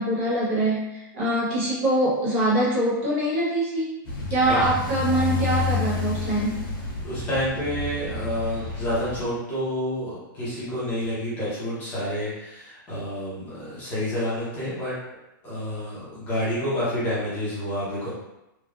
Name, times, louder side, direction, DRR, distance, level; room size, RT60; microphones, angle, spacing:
voice 1, 0.0-3.9 4.3-6.6, right 1 dB, 35° right, -6 dB, 0.9 m, -23 dB
sound 1, 4.1-9.2, left 5 dB, 85° left, 1.0 m, -30 dB
voice 2, 7.0-14.9 15.4-18.1, equal, 15° left, -10 dB, 0.9 m, -29 dB
3.3 x 2.4 x 2.4 m, 0.92 s
hypercardioid pair, 175°, 12 cm